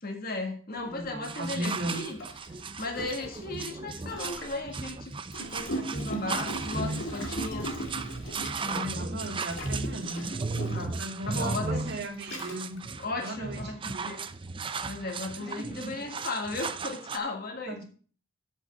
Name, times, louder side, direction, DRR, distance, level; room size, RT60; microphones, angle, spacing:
voice 1, 0.0-2.2 2.8-7.8 8.6-9.2 10.7-11.0 11.2-11.9 13.0-14.3 14.9-17.8, left 3 dB, 45° left, 3 dB, 1.7 m, -36 dB
voice 2, 0.8-2.2 8.7-10.3 11.0-12.8 13.2-14.1 15.4-15.9 17.7-17.8, right 1 dB, 50° right, 2 dB, 2.2 m, -37 dB
Gurgling, 1.0-1.1 1.9-4.6 5.3-8.9 9.5-11.0 11.7-11.8 12.2-12.8, right 1 dB, 60° left, 1.9 m, -38 dB
sound 1, 1.2-17.2, right 4 dB, 25° right, 0.5 m, -36 dB
7.7 x 6.4 x 6.9 m, 0.41 s
head